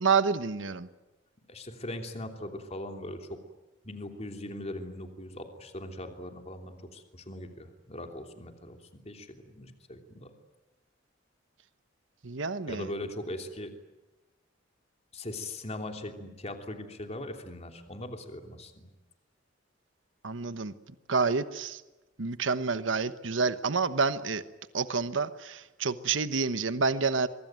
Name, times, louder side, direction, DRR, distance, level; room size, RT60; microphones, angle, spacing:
voice 1, 0.0-0.9 12.2-12.9 20.2-20.7 21.1-21.8 22.2-24.4 24.7-27.3, right 4 dB, 85° right, 12 dB, 1.1 m, -28 dB
voice 2, 1.5-3.4 3.8-8.8 9.0-10.3 12.7-13.7 15.1-18.9, left 1 dB, 35° left, 5 dB, 3.1 m, -40 dB
24.0 x 23.5 x 9.3 m, 1.1 s
head